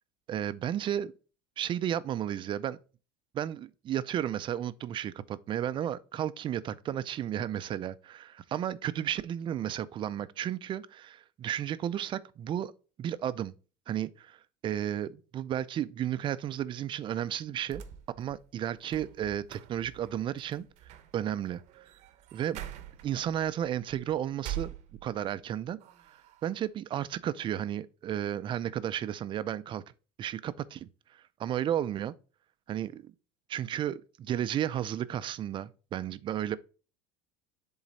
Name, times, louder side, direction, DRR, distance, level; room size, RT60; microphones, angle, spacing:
voice 1, 0.3-1.1 1.6-2.8 3.3-12.7 13.0-13.5 13.9-17.8 18.2-20.7 21.1-21.6 22.3-22.6 23.0-24.7 25.0-25.8 26.4-29.8 30.2-32.1 32.7-33.1 33.5-36.6, right 10 dB, 35° right, 0.5 m, -33 dB
sound 1, 17.6-25.4 25.8-26.6, right 11 dB, 55° right, 0.8 m, -45 dB
7.2 x 3.9 x 4.1 m
supercardioid pair, 120°, 15 cm